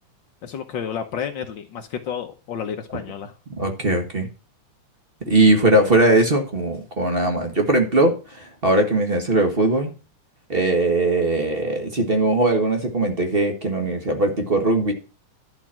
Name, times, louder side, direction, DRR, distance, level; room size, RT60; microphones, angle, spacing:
voice 1, 0.4-3.3, left 8 dB, 80° left, 5 dB, 1.0 m, -31 dB
voice 2, 3.5-4.3 5.3-9.9 10.5-14.9, right 2 dB, 35° right, 4 dB, 0.9 m, -20 dB
11.5 x 6.0 x 7.4 m, 0.33 s
omnidirectional pair, 3.6 m